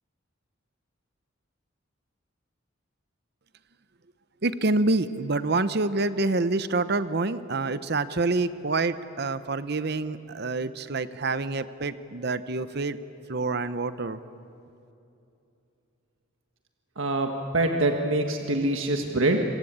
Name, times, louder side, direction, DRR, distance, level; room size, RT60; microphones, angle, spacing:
voice 1, 4.4-13.0 13.3-14.2, right 3 dB, 50° right, 13 dB, 0.8 m, -27 dB
voice 2, 17.0-19.4, right 2 dB, 75° right, 4 dB, 1.6 m, -25 dB
26.5 x 23.5 x 8.8 m, 2.8 s
head